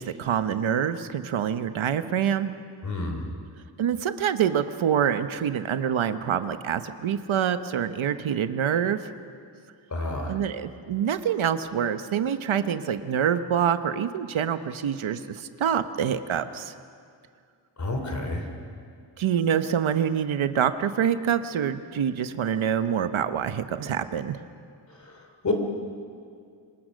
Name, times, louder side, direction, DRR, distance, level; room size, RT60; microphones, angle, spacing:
voice 1, 0.0-2.5 3.8-9.0 10.3-16.7 19.2-24.4, right 8 dB, 85° right, 10 dB, 1.0 m, -26 dB
voice 2, 2.8-3.2 9.9-10.3 17.8-18.5 25.4-25.5, left 2 dB, 35° left, 4 dB, 3.3 m, -28 dB
26.0 x 22.5 x 6.4 m, 2.3 s
wide cardioid pair, 170°, 47 cm